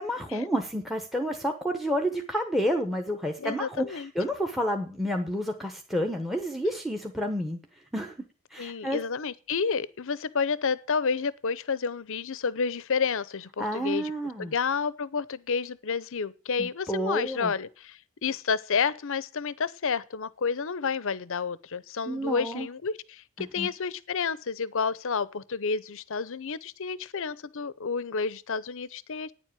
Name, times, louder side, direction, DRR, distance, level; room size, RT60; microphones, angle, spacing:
voice 1, 0.0-7.6 7.9-8.2 8.5-9.0 13.6-14.5 16.6-17.5 22.1-22.7 23.6-23.7, equal, ahead, 0.9 m, -30 dB
voice 2, 3.4-4.1 8.6-14.1 14.4-29.3, left 5 dB, 60° left, 0.7 m, -30 dB
9.6 x 7.4 x 8.7 m
head